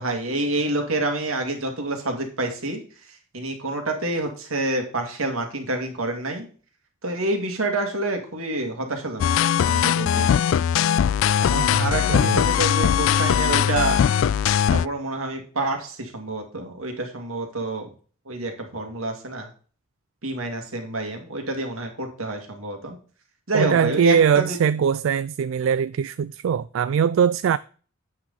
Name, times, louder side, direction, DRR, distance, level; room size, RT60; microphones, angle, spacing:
voice 1, 0.0-2.8 3.3-6.5 7.0-9.3 9.6-10.3 11.4-14.0 14.7-17.9 18.3-19.5 20.2-23.0 23.5-24.6, right 2 dB, 85° right, 2.3 m, -28 dB
sound 1, 9.2-14.9, left 8 dB, 70° left, 0.3 m, -20 dB
voice 2, 11.5-12.5 23.5-27.6, right 7 dB, 70° right, 0.3 m, -22 dB
8.7 x 6.1 x 3.9 m
head